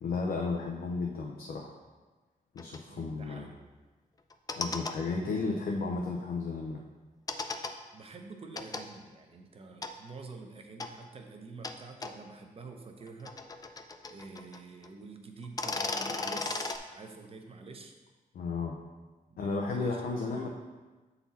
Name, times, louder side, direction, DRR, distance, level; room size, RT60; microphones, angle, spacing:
voice 1, 0.0-1.7 2.5-3.5 4.6-6.8 18.3-18.8 19.4-20.5, left 4 dB, 80° left, 0 dB, 0.6 m, -33 dB
sound 1, 2.6-2.8 4.3-4.9 7.3-7.7 8.6-8.8 9.8-9.9 10.8-10.9 11.6-11.7 12.0-12.1 13.0-14.6 14.8-14.9 15.4-16.8, left 3 dB, 25° left, 0.4 m, -35 dB
voice 2, 2.9-3.6 7.9-13.3 14.1-17.9 19.3-20.5, right 3 dB, 40° right, 4 dB, 0.7 m, -47 dB
7.1 x 4.1 x 4.1 m, 1.3 s
wide cardioid pair, 115°, 15 cm